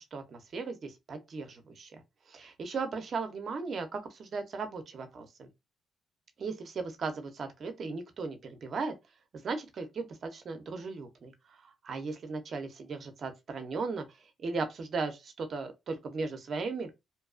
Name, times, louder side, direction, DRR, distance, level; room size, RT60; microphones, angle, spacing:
voice 1, 0.1-2.0 2.3-5.5 6.4-8.9 9.4-11.3 11.6-14.0 14.4-16.9, right 4 dB, 50° right, 0.6 m, -37 dB
2.6 x 2.3 x 2.4 m
cardioid pair, 90°, 0 cm